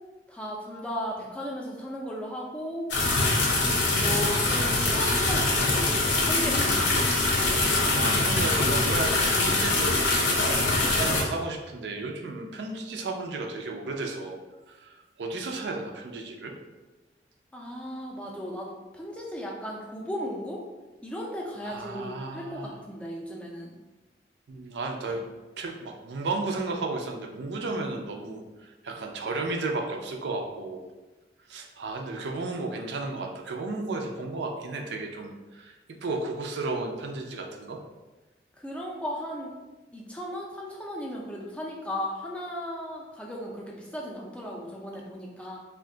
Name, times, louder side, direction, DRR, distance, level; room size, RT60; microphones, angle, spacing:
voice 1, 0.3-2.9 4.0-7.0 17.5-20.6 21.0-23.7 38.6-39.5 39.9-45.6, equal, 5° left, -2 dB, 0.4 m, -36 dB
sound 1, 2.9-11.2, left 2 dB, 85° left, 0.6 m, -24 dB
voice 2, 7.9-14.4 14.7-16.5 21.6-22.7 24.5-25.2 25.6-30.8 31.5-37.8, right 3 dB, 75° right, 2 dB, 0.4 m, -33 dB
2.5 x 2.2 x 3.7 m, 1.1 s
head